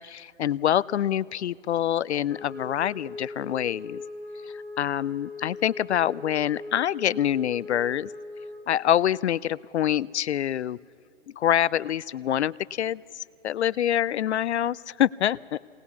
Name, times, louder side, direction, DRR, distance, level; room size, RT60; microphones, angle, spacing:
voice 1, 0.0-4.0 4.8-8.1 8.7-10.8 11.4-13.0 13.4-15.6, left 11 dB, 60° left, 21 dB, 0.5 m, -25 dB
Wind instrument woodwind instrument, 2.3-8.7, left 2 dB, 5° left, 1.9 m, -40 dB
22.5 x 19.0 x 7.1 m, 2.5 s
hypercardioid pair, 155°, 38 cm